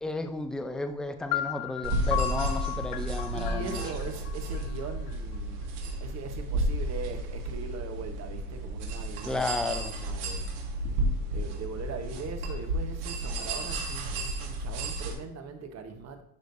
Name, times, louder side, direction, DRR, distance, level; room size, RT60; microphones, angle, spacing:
voice 1, 0.0-3.8 9.2-10.0, left 2 dB, ahead, 0.5 m, -33 dB
sound 1, 1.3-5.2, left 14 dB, 55° left, 0.6 m, -35 dB
sound 2, 1.8-15.1, right 1 dB, 75° right, 2.0 m, -32 dB
voice 2, 3.3-10.5 10.9-16.2, right 4 dB, 40° right, 1.1 m, -41 dB
11.0 x 5.1 x 2.6 m
supercardioid pair, 115°, 41 cm